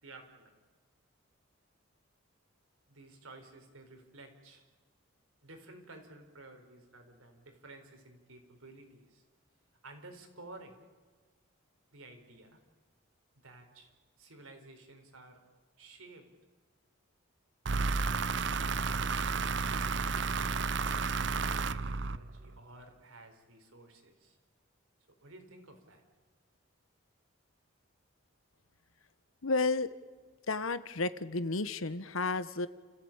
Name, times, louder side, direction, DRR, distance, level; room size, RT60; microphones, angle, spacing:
voice 1, 0.0-0.5 2.9-4.7 5.4-9.2 9.8-10.8 11.9-12.6 13.4-13.9 14.2-15.4 15.8-16.3 21.4-24.4 25.2-26.0, right 2 dB, 90° right, 5 dB, 4.2 m, -53 dB
sound 1, 17.7-22.6, right 4 dB, 55° right, 0.7 m, -32 dB
voice 2, 29.4-29.9 30.5-32.7, left 3 dB, 80° left, 14 dB, 1.1 m, -32 dB
30.0 x 15.0 x 8.8 m, 1.4 s
head